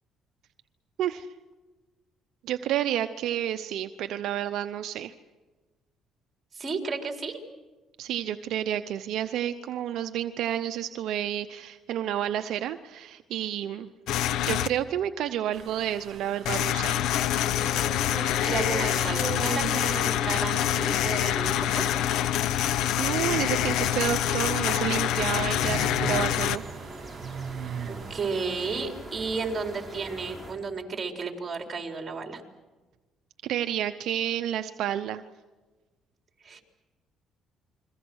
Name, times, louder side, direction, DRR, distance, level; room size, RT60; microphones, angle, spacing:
voice 1, 1.0-1.3 2.4-5.1 8.0-13.9 14.5-17.0 23.0-26.6 33.4-35.2, right 11 dB, 75° right, 8 dB, 0.8 m, -30 dB
voice 2, 6.5-7.4 17.9-21.9 27.9-32.4 36.4-36.6, right 4 dB, 35° right, 2 dB, 4.2 m, -33 dB
sound 1, 14.1-14.7 16.4-26.6, left 11 dB, 75° left, 0.8 m, -26 dB
sound 2, 15.5-28.9, right 7 dB, 55° right, 2.4 m, -40 dB
sound 3, 23.6-30.5, right 1 dB, ahead, 6.5 m, -43 dB
29.5 x 22.5 x 6.4 m, 1.2 s
cardioid pair, 90°, 0 cm